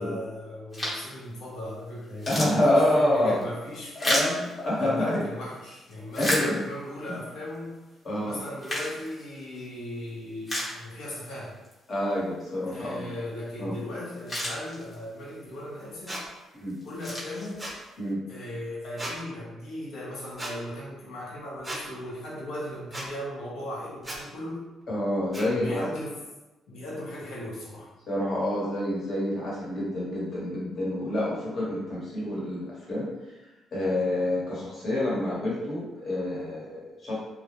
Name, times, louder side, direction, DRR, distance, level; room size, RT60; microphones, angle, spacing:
voice 1, 0.0-4.5 4.8-7.8 8.2-11.6 12.7-16.2 16.8-17.6 18.3-24.6 25.5-26.2 26.7-27.9, left 1 dB, 80° left, -6 dB, 0.7 m, -37 dB
sound 1, 0.7-1.2 1.7-1.8 2.0-5.2 5.7-7.0 7.5-7.6 8.3-9.7 10.1-10.2 10.4-11.3 11.6-11.7 13.7-13.8 14.1-15.2 15.8-16.1 16.7-17.9, equal, 25° left, 0.9 m, -32 dB
voice 2, 2.3-3.4 4.0-5.2 6.2-6.6 7.1-7.2 8.0-8.4 11.9-13.1 13.6-13.7 16.5-16.8 18.0-18.2 24.9-25.8 28.1-33.1 33.7-37.2, left 1 dB, 50° left, -7 dB, 1.1 m, -27 dB
sound 2, 16.1-16.2 17.6-17.8 19.0-19.2 20.4-20.5 21.6-21.8 22.9-23.1 24.0-24.2 25.3-25.5, right 1 dB, 15° right, 0.5 m, -35 dB
2.2 x 2.0 x 2.9 m, 1.1 s
cardioid pair, 90°, 0 cm